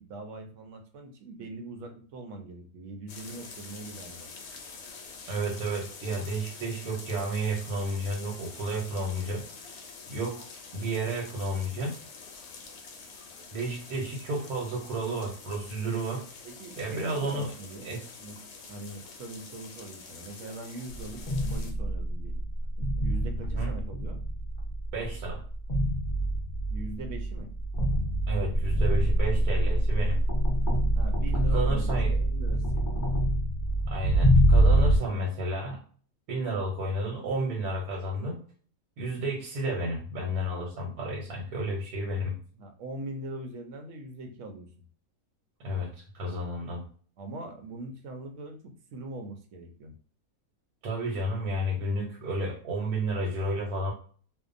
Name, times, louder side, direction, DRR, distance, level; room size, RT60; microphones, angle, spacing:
voice 1, 0.0-4.3 16.4-17.9 18.2-18.4 18.7-22.4 23.0-24.2 26.7-27.5 31.0-32.9 42.5-44.7 47.2-50.0, right 2 dB, 65° right, 4 dB, 0.8 m, -41 dB
sound 1, 3.1-21.7, left 4 dB, 80° left, 1.1 m, -46 dB
voice 2, 5.3-9.8 10.1-10.4 10.7-11.9 13.5-16.2 16.8-17.5 17.8-18.1 23.5-23.7 24.9-25.4 28.3-30.2 31.5-32.1 33.9-35.8 36.3-38.4 39.0-42.4 45.6-46.8 50.8-53.9, right 1 dB, 85° right, -2 dB, 1.2 m, -31 dB
sound 2, 20.9-35.0, right 1 dB, 45° left, 0.6 m, -25 dB
2.6 x 2.1 x 2.5 m, 0.43 s
omnidirectional pair, 1.5 m